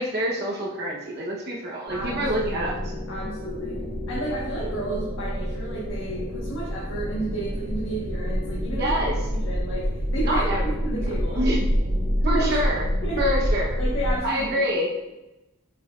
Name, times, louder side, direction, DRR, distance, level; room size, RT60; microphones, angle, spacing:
voice 1, 0.0-2.8 8.8-9.1 10.2-10.6 11.3-11.6 12.2-12.8 13.2-13.8 14.2-14.9, equal, 50° right, -3 dB, 1.0 m, -26 dB
voice 2, 1.9-2.6 3.1-8.9 9.4-11.5 12.3-12.5 13.0-13.2 13.8-14.6, right 1 dB, 65° left, -7 dB, 1.4 m, -32 dB
sound 1, 1.9-14.2, equal, 80° right, 1.8 m, -27 dB
7.7 x 5.6 x 2.5 m, 1.0 s
head